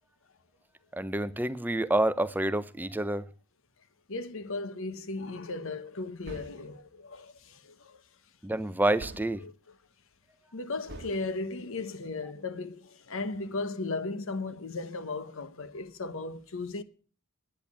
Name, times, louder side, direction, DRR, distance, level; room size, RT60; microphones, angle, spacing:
voice 1, 0.9-3.2 8.4-9.4, right 1 dB, 10° right, 0.5 m, -28 dB
voice 2, 4.1-8.0 9.4-9.5 10.5-16.8, left 3 dB, 65° left, 1.0 m, -36 dB
sound 1, 6.2-6.8 9.0-9.5 10.9-11.3, right 2 dB, 50° right, 1.2 m, -45 dB
10.5 x 8.9 x 8.4 m
head